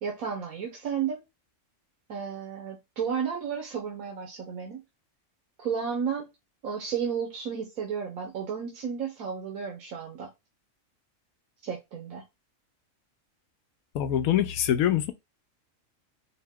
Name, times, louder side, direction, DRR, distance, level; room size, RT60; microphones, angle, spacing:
voice 1, 0.0-1.2 2.1-4.8 5.6-6.3 6.6-10.3 11.6-12.2, right 7 dB, 85° right, 1.3 m, -32 dB
voice 2, 13.9-15.1, left 11 dB, 90° left, 1.0 m, -24 dB
4.6 x 2.2 x 3.5 m
omnidirectional pair, 1.4 m